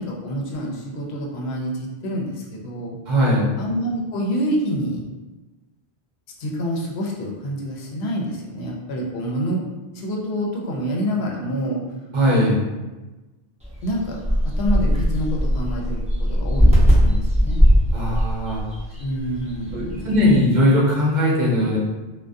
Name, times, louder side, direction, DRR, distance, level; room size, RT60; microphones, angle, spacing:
voice 1, 0.0-3.0 3.6-5.0 6.4-9.6 9.9-11.8 13.8-14.2 14.6-17.6 19.0-20.1, equal, 90° left, -1 dB, 0.8 m, -27 dB
voice 2, 3.1-3.5 12.1-12.6 17.9-18.6 19.7-21.8, equal, 55° right, -5 dB, 0.7 m, -19 dB
sound 1, 13.6-20.4, equal, 10° right, 0.5 m, -20 dB
2.5 x 2.2 x 2.3 m, 1.2 s
omnidirectional pair, 1.0 m